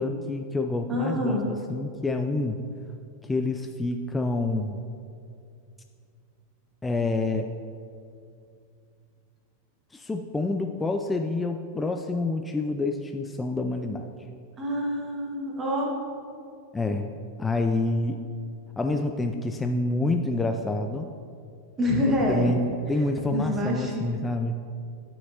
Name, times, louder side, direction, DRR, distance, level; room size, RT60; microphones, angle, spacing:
voice 1, 0.0-2.6 3.2-4.8 6.8-7.5 9.9-14.1 16.7-17.1 17.4-18.2 18.8-21.1 22.1-24.6, left 2 dB, 10° left, 5 dB, 0.3 m, -27 dB
voice 2, 0.9-1.5 14.6-15.9 21.8-22.6 23.3-24.0, left 1 dB, 20° right, -2 dB, 1.7 m, -26 dB
12.0 x 5.7 x 2.8 m, 2.4 s
figure-of-eight pair, 90°, 0 cm